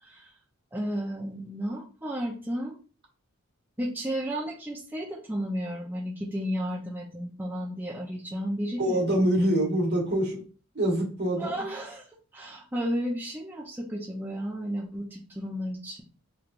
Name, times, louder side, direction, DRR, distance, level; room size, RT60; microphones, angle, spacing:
voice 1, 0.0-0.3 0.7-2.8 3.8-9.3 11.4-12.1 12.3-16.0, equal, 10° right, -3 dB, 0.6 m, -33 dB
voice 2, 8.8-10.4 10.7-11.5, right 1 dB, 50° right, -1 dB, 1.5 m, -25 dB
4.6 x 3.2 x 2.5 m, 0.38 s
head